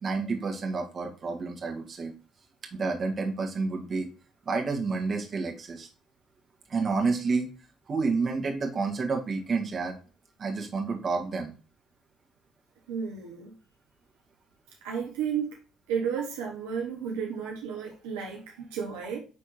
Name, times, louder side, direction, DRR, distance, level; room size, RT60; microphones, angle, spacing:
voice 1, 0.0-2.1 2.7-4.1 4.4-5.9 6.7-7.5 7.9-10.0 10.4-11.5, right 4 dB, 40° right, 1.6 m, -29 dB
voice 2, 12.9-13.5 14.8-15.6 15.9-19.2, right 7 dB, 75° right, 0.9 m, -32 dB
9.7 x 3.5 x 3.1 m
hypercardioid pair, 50°, 0 cm